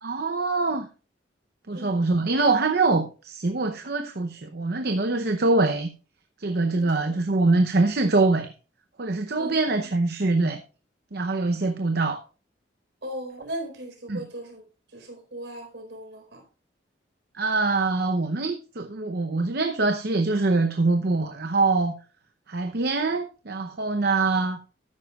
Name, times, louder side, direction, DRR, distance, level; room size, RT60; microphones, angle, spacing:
voice 1, 0.0-0.9 1.7-5.9 6.4-8.5 9.0-10.6 11.1-12.2 14.1-14.2 17.3-21.9 22.5-24.6, right 3 dB, 60° right, 0.8 m, -24 dB
voice 2, 1.7-2.0 6.7-7.0 9.4-9.5 13.0-14.6 14.9-16.4, right 1 dB, 75° right, 4.3 m, -38 dB
13.0 x 9.7 x 2.4 m
head